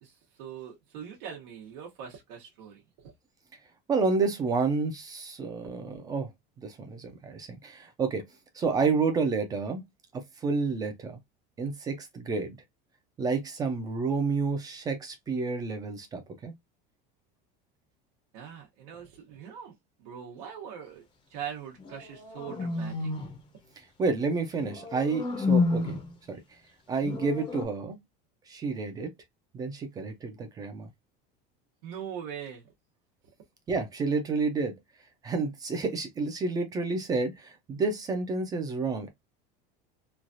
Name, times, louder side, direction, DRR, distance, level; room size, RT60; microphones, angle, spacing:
voice 1, 0.0-3.1 18.3-23.1 31.8-32.6, right 8 dB, 85° right, 1.0 m, -42 dB
voice 2, 3.9-6.3 6.6-8.3 8.5-9.8 10.1-11.2 11.6-12.6 13.2-16.5 23.8-26.0 26.3-26.4 26.9-28.0 28.5-29.1 29.5-30.9 33.7-34.8 35.2-39.1, right 4 dB, 15° right, 0.4 m, -30 dB
sound 1, 21.8-23.4 24.6-26.1 27.0-27.7, left 3 dB, 25° left, 0.6 m, -30 dB
3.1 x 2.3 x 2.5 m
cardioid pair, 170°, 21 cm